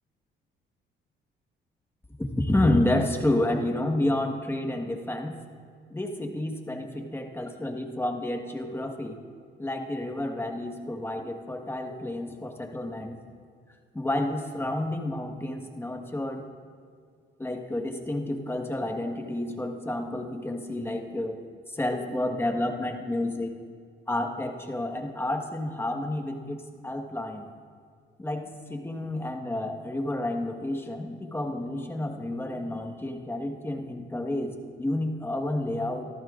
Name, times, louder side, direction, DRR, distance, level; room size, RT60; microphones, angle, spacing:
voice 1, 2.2-5.3 5.9-9.2 9.6-13.2 13.9-16.5 17.4-21.4 21.7-23.5 24.1-27.5 28.2-36.0, left 1 dB, 10° left, 3 dB, 1.4 m, -30 dB
24.5 x 14.0 x 2.5 m, 2.1 s
cardioid pair, 90°, 20 cm